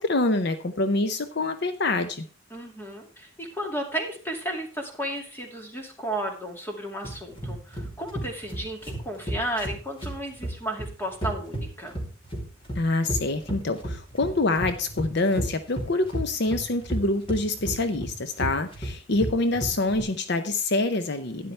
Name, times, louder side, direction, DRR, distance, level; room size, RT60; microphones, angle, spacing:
voice 1, 0.0-2.3 12.8-21.5, left 2 dB, 55° left, 10 dB, 0.7 m, -26 dB
voice 2, 2.5-12.0, right 1 dB, 10° left, 2 dB, 2.3 m, -33 dB
sound 1, 7.0-20.0, right 1 dB, 25° left, 3.0 m, -33 dB
12.0 x 10.0 x 3.3 m, 0.38 s
head